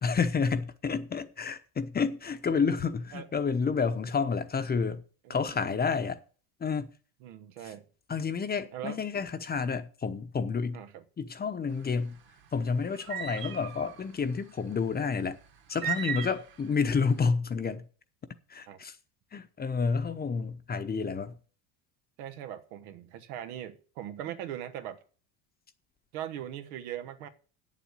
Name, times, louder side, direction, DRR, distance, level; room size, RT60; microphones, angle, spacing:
voice 1, 0.0-5.0 5.3-6.2 6.6-6.9 8.1-10.8 11.2-12.2 12.5-15.4 15.7-17.8 18.5-19.0 19.3-21.4, left 5 dB, 20° left, 0.8 m, -29 dB
voice 2, 5.2-5.8 7.2-7.8 8.7-9.0 10.7-11.0 18.7-18.8 22.2-25.0 26.1-27.3, right 11 dB, 85° right, 1.3 m, -40 dB
sound 1, 11.7-17.1, right 9 dB, 55° right, 2.1 m, -37 dB
8.3 x 7.4 x 8.2 m
supercardioid pair, 115°, 43 cm